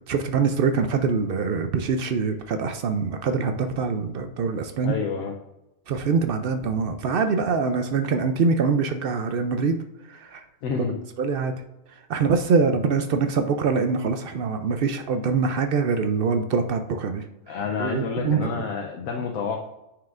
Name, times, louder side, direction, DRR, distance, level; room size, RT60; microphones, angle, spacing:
voice 1, 0.1-5.0 5.9-9.8 10.1-10.4 10.9-11.5 12.1-18.7, right 5 dB, 70° right, 7 dB, 0.5 m, -24 dB
voice 2, 4.8-5.3 10.6-11.0 17.5-19.7, left 5 dB, 90° left, 1 dB, 1.1 m, -29 dB
9.3 x 4.7 x 2.5 m, 0.93 s
omnidirectional pair, 1.5 m